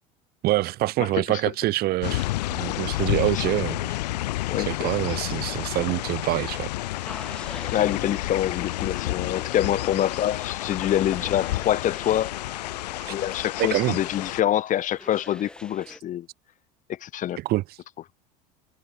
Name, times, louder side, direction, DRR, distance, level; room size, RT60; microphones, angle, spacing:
voice 1, 0.4-3.8 4.7-6.7 13.0-13.1 13.6-14.0 17.4-17.6, right 17 dB, 50° right, 0.6 m, -25 dB
voice 2, 1.0-1.4 3.3-3.4 4.5-4.9 7.6-12.3 13.1-16.3 16.9-17.4, left 11 dB, 40° left, 0.7 m, -26 dB
sound 1, 2.0-14.4, left 17 dB, 80° left, 2.0 m, -30 dB
sound 2, 6.8-16.0, left 1 dB, 5° left, 2.7 m, -46 dB
hypercardioid pair, 90°, 21 cm